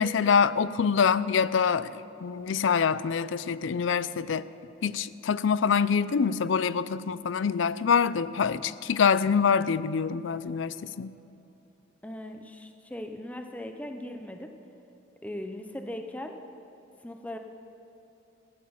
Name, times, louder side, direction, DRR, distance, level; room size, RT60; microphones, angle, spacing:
voice 1, 0.0-1.9 2.2-4.4 4.8-11.1, left 6 dB, 70° left, 0.4 m, -25 dB
voice 2, 12.0-14.5 15.2-16.3 17.0-17.4, left 1 dB, 5° left, 0.7 m, -39 dB
15.0 x 11.0 x 7.1 m
head